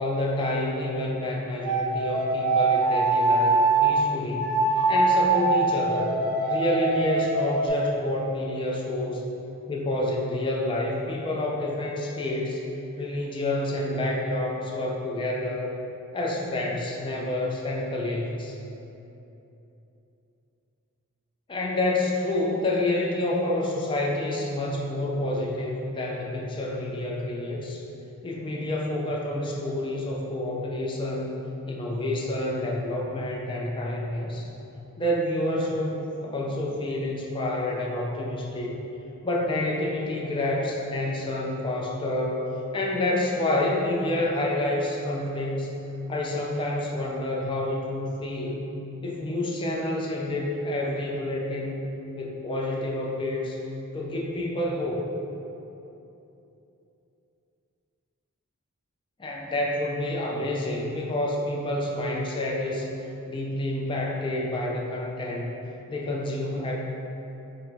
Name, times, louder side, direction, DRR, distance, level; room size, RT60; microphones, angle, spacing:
voice 1, 0.0-4.6 4.9-6.1 6.5-9.3 9.7-12.6 13.0-15.7 16.1-18.6 21.5-27.8 28.2-31.3 31.7-34.5 35.0-38.8 39.2-45.7 46.1-48.6 49.0-51.8 52.2-53.6 53.9-55.0 59.2-62.9 63.3-65.6 65.9-66.7, left 1 dB, 20° left, -3 dB, 0.4 m, -28 dB
sound 1, 1.6-3.8 4.4-7.7, right 3 dB, 40° left, 1.2 m, -23 dB
4.1 x 2.0 x 4.0 m, 3.0 s
head